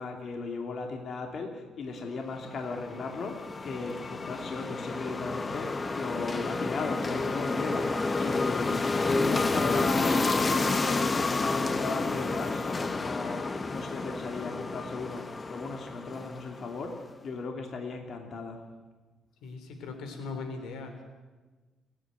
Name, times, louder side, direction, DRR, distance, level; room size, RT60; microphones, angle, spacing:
voice 1, 0.0-18.6, left 4 dB, 55° left, 3 dB, 2.8 m, -37 dB
sound 1, 2.4-16.8, left 3 dB, 30° left, 1.1 m, -30 dB
voice 2, 19.4-21.0, left 4 dB, 85° left, 7 dB, 3.4 m, -39 dB
29.0 x 10.0 x 9.3 m, 1.3 s
cardioid pair, 90°, 0 cm